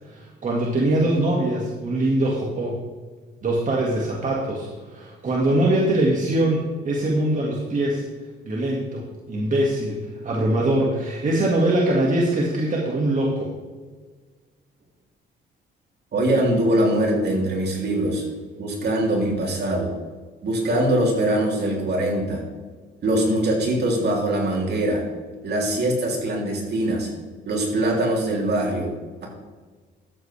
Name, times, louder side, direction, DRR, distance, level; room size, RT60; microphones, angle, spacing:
voice 1, 0.1-2.8 3.4-8.0 8.4-10.0 10.2-13.5, right 1 dB, 40° right, -3 dB, 2.1 m, -22 dB
voice 2, 16.1-18.2 18.6-19.9 20.4-22.4 23.0-25.0 25.4-27.1 27.5-28.9, right 1 dB, 55° right, -1 dB, 3.3 m, -22 dB
13.0 x 8.3 x 3.5 m, 1.4 s
cardioid pair, 90°, 20 cm